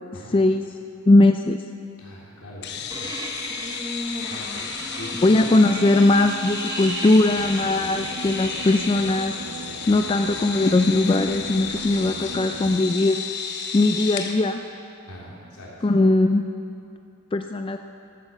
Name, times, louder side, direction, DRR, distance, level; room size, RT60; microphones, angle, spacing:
voice 1, 0.3-0.7 1.1-1.6 5.2-9.4 9.9-13.2 13.7-14.6 15.8-16.5 17.3-17.8, left 2 dB, 25° left, 6 dB, 0.3 m, -19 dB
voice 2, 2.0-3.1 4.3-5.5 9.8-10.0 15.1-15.7, equal, 80° left, -6 dB, 3.8 m, -41 dB
sound 1, 2.6-14.4, left 6 dB, 50° left, 0.9 m, -33 dB
sound 2, 2.9-8.9, right 1 dB, 15° right, 1.1 m, -34 dB
sound 3, 7.3-12.8, right 3 dB, 75° right, 0.8 m, -38 dB
13.5 x 8.9 x 6.9 m, 2.5 s
head